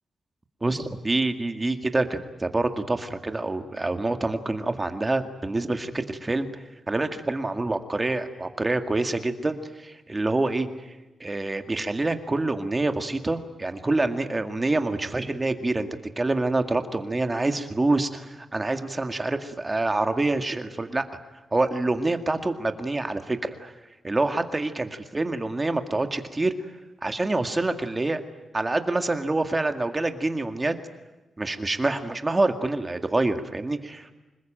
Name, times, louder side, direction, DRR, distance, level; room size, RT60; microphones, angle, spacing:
voice 1, 0.6-6.5 6.9-10.9 11.2-15.9 16.2-21.0 21.5-23.7 24.0-26.5 27.0-28.2 28.5-30.7 31.4-34.1, right 2 dB, 20° right, 7 dB, 2.0 m, -26 dB
26.5 x 20.5 x 9.0 m, 1.1 s
wide cardioid pair, 115°, 0 cm